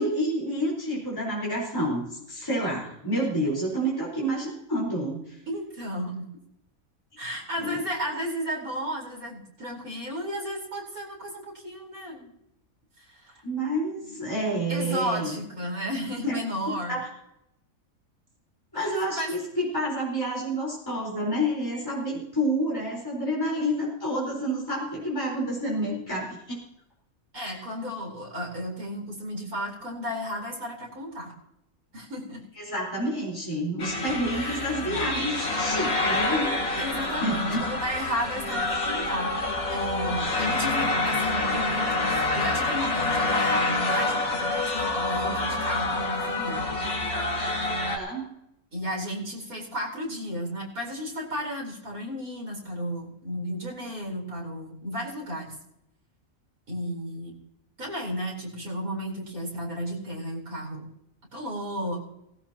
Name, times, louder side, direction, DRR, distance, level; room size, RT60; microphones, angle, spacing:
voice 1, 0.0-5.4 7.6-7.8 13.4-15.3 16.3-16.4 16.9-17.1 18.7-26.6 27.4-27.5 32.6-36.9 37.2-37.7 40.3-40.5 47.8-48.3, equal, 15° left, -5 dB, 4.6 m, -29 dB
voice 2, 5.5-6.3 7.2-12.3 13.0-13.4 14.7-16.9 18.7-18.9 19.2-19.3 27.3-31.3 31.9-32.4 34.3-34.7 36.7-46.6 48.7-55.5 56.7-57.3 57.8-60.9 61.3-62.0, equal, 85° right, -2 dB, 5.0 m, -33 dB
sound 1, 33.8-48.0, left 2 dB, 85° left, 2.7 m, -27 dB
17.5 x 17.0 x 3.0 m, 0.79 s
omnidirectional pair, 1.5 m